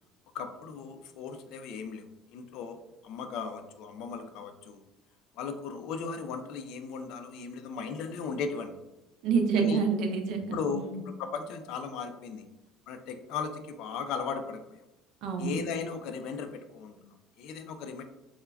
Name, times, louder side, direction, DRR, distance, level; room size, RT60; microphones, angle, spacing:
voice 1, 0.3-2.1 2.3-4.8 5.4-8.7 9.6-9.8 10.5-10.8 11.2-12.5 12.9-14.8 15.4-18.0, left 5 dB, 60° left, 7 dB, 0.3 m, -37 dB
voice 2, 9.2-11.0 15.2-15.6, right 5 dB, 60° right, 4 dB, 0.5 m, -28 dB
2.3 x 2.1 x 3.3 m, 0.98 s
cardioid pair, 150°, 0 cm